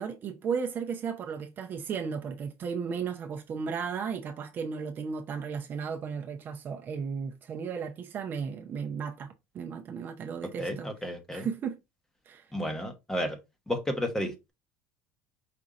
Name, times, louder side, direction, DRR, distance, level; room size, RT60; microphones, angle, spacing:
voice 1, 0.0-10.9 11.3-11.8 12.3-12.5, right 6 dB, 35° right, 0.6 m, -35 dB
voice 2, 10.6-11.5 12.5-13.4 13.7-14.5, equal, 10° left, 1.0 m, -32 dB
5.1 x 2.7 x 3.6 m
cardioid pair, 145°, 6 cm